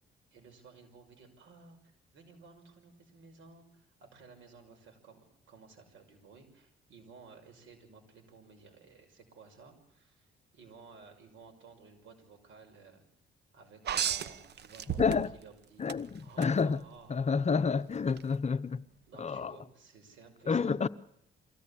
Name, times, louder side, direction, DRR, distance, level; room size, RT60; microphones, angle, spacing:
voice 1, 0.3-13.0 13.5-17.6 19.1-20.7, right 4 dB, 75° right, 5.9 m, -56 dB
sound 1, 13.9-15.5 15.9-16.5 18.1-18.2, right 9 dB, 55° right, 1.0 m, -33 dB
voice 2, 15.0-15.3 15.8-16.8 17.1-18.8 19.2-19.6 20.5-20.9, left 5 dB, 35° left, 0.8 m, -29 dB
23.5 x 16.0 x 8.5 m
cardioid pair, 90°, 20 cm